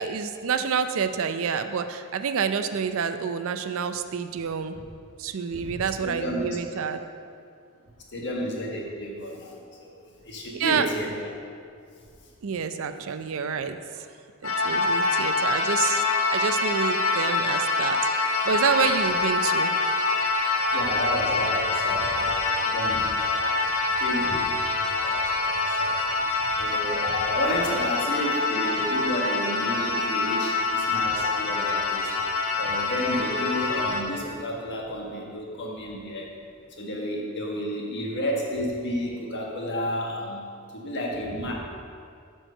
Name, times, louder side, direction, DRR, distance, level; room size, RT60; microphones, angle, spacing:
voice 1, 0.0-4.8 5.2-7.0 10.5-10.9 12.4-13.8 14.4-16.0 16.3-18.0 18.4-19.7, right 6 dB, 65° right, 9 dB, 0.5 m, -28 dB
voice 2, 5.5-6.8 8.1-11.3 14.7-14.9 20.7-23.7 24.0-26.3 26.6-32.1 32.5-36.3 36.8-40.4 40.7-41.5, equal, 55° left, -1 dB, 1.5 m, -32 dB
sound 1, 14.4-34.0, left 3 dB, 75° left, 1.0 m, -25 dB
9.0 x 4.6 x 6.6 m, 2.3 s
head